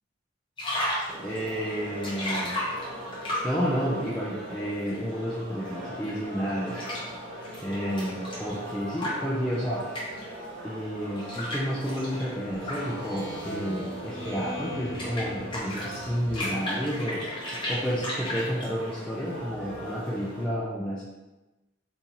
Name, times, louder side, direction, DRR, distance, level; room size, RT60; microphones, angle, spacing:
sound 1, 0.6-3.7 4.5-10.3 11.0-20.3, left 1 dB, 25° left, 0.9 m, -36 dB
sound 2, 1.1-20.5, equal, 65° right, 1.0 m, -41 dB
voice 1, 1.2-2.6 3.2-6.8 7.6-9.9 10.6-17.3 17.7-21.0, equal, 5° left, -7 dB, 0.3 m, -31 dB
Speech synthesizer, 12.4-16.0, equal, 25° right, 1.5 m, -39 dB
2.7 x 2.7 x 3.7 m, 1.1 s
head